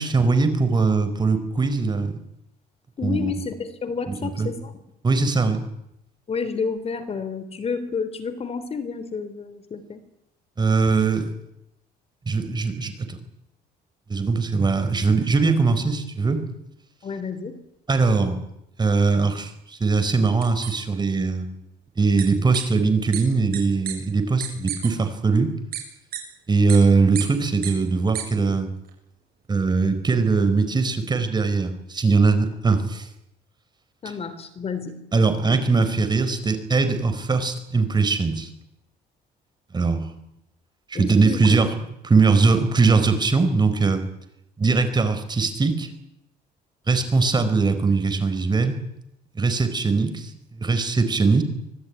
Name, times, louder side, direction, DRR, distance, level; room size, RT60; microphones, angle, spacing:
voice 1, 0.0-2.2 3.0-3.3 4.1-4.5 5.0-5.6 10.6-11.3 12.3-13.2 14.1-16.4 17.9-18.4 18.8-21.5 22.0-25.5 26.5-28.7 29.5-33.1 35.1-38.5 39.7-40.1 40.9-41.7 42.0-44.0 44.6-45.9 46.9-48.8 49.3-51.4, right 4 dB, 25° right, 9 dB, 4.6 m, -21 dB
voice 2, 3.0-4.7 6.3-10.0 17.0-17.6 34.0-35.0 40.9-41.4, left 5 dB, 35° left, 11 dB, 3.3 m, -30 dB
sound 1, 20.4-20.7 22.2-22.3 22.5-22.6 23.1-23.2 23.5-23.6 23.8-23.9 24.4-24.9 25.7-25.8 26.1-26.2 26.7-26.8 27.1-27.2 27.6-27.7 28.1-28.2, right 11 dB, 65° right, 6.8 m, -30 dB
25.5 x 18.5 x 9.6 m, 0.83 s
cardioid pair, 110°, 17 cm